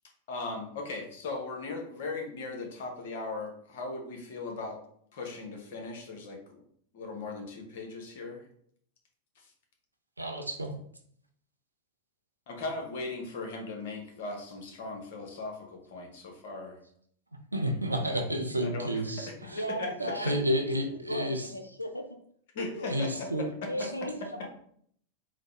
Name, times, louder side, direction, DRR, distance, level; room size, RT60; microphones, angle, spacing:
voice 1, 0.3-4.8 5.1-6.6 6.9-8.4 12.5-16.8 18.6-18.9 19.6-20.0 22.5-23.3 23.8-23.9, left 3 dB, 55° left, 2 dB, 0.8 m, -38 dB
voice 2, 10.2-10.7 17.5-19.7 20.0-21.5 22.9-23.4 23.8-23.9, equal, 85° right, 4 dB, 0.5 m, -31 dB
voice 3, 19.5-20.8 21.1-22.1 22.7-22.9 23.6-24.5, equal, 85° left, 6 dB, 0.3 m, -37 dB
3.9 x 2.1 x 3.1 m, 0.64 s
figure-of-eight pair, 90°, 0 cm